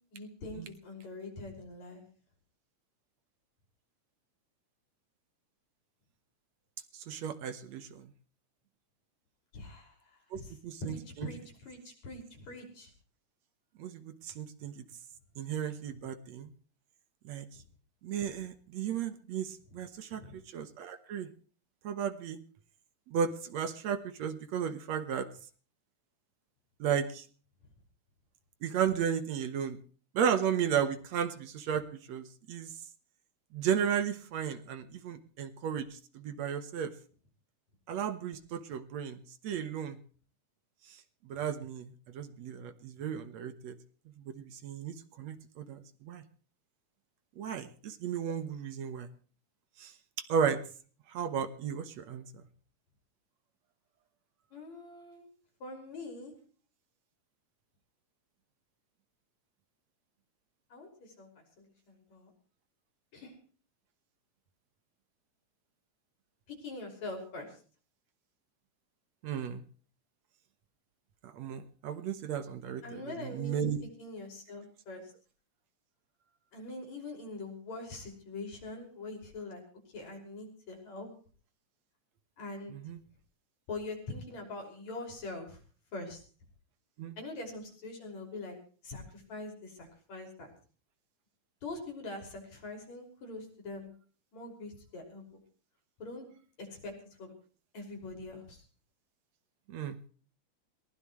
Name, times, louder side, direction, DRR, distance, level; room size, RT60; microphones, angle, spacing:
voice 1, 0.1-2.0 9.5-12.9 20.1-20.4 54.5-55.3 55.6-56.3 60.7-62.3 63.1-63.3 66.5-67.6 72.8-73.6 74.0-75.1 76.5-79.6 79.9-81.1 82.4-82.8 83.7-85.6 85.9-86.2 87.2-88.6 88.8-90.5 91.6-93.9 94.3-95.4 96.0-96.3 96.6-97.3 97.7-98.6, left 2 dB, 65° left, 2 dB, 7.0 m, -43 dB
voice 2, 6.9-8.1 10.3-11.3 13.8-14.8 15.4-16.5 17.2-17.5 18.0-21.3 21.8-22.4 23.1-25.3 26.8-27.3 28.6-29.8 30.1-32.7 33.5-36.9 37.9-40.0 40.9-43.8 44.2-46.2 47.4-49.1 49.8-49.9 50.2-50.6 51.1-52.2 69.2-69.6 71.2-73.8 82.7-83.0 87.0-87.2 99.7-100.0, right 8 dB, 65° right, 11 dB, 2.4 m, -34 dB
22.0 x 19.5 x 3.2 m, 0.41 s
omnidirectional pair, 3.4 m